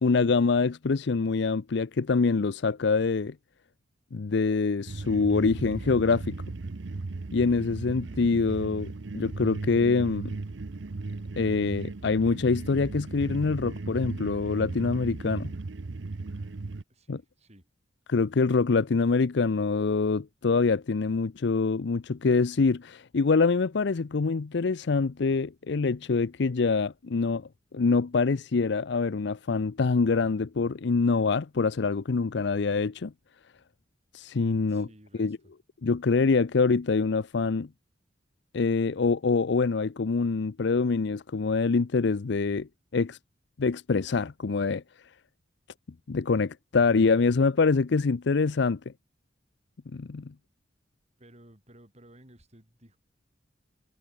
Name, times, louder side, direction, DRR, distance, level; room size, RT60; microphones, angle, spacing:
voice 1, 0.0-3.3 4.1-6.4 7.3-10.4 11.4-15.5 17.1-17.2 18.1-27.5 27.7-33.1 34.1-34.9 35.2-35.4 35.8-37.7 38.5-43.2 43.6-44.8 46.1-48.8 49.9-50.3, left 4 dB, 65° left, 0.6 m, -25 dB
sound 1, 4.9-16.8, right 3 dB, 75° right, 0.7 m, -36 dB
voice 2, 16.9-17.7 34.7-35.5 51.2-53.0, right 1 dB, 35° right, 6.4 m, -55 dB
head